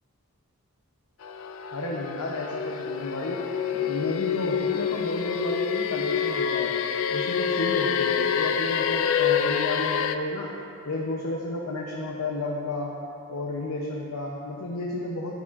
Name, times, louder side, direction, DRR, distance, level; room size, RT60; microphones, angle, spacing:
sound 1, 1.2-10.2, left 7 dB, 65° left, 0.3 m, -27 dB
voice 1, 1.7-3.4 3.7-6.8 7.1-10.5 10.8-12.9 13.3-15.4, left 2 dB, 90° left, -2 dB, 0.7 m, -32 dB
11.0 x 7.0 x 2.5 m, 2.6 s
head